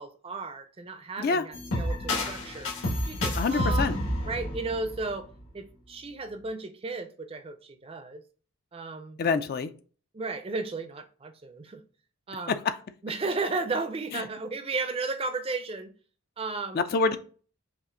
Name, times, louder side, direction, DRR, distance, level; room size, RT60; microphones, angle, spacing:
voice 1, 0.0-2.7 3.1-3.9 4.3-5.3 5.5-8.2 8.7-9.2 10.1-11.8 12.3-12.6 13.0-15.9 16.4-16.9, right 3 dB, 25° right, 0.4 m, -34 dB
sound 1, 1.5-5.5, left 1 dB, 75° left, 1.6 m, -30 dB
voice 2, 3.4-3.9 9.2-9.7 16.7-17.2, left 4 dB, 45° left, 0.3 m, -26 dB
5.7 x 2.5 x 3.6 m
head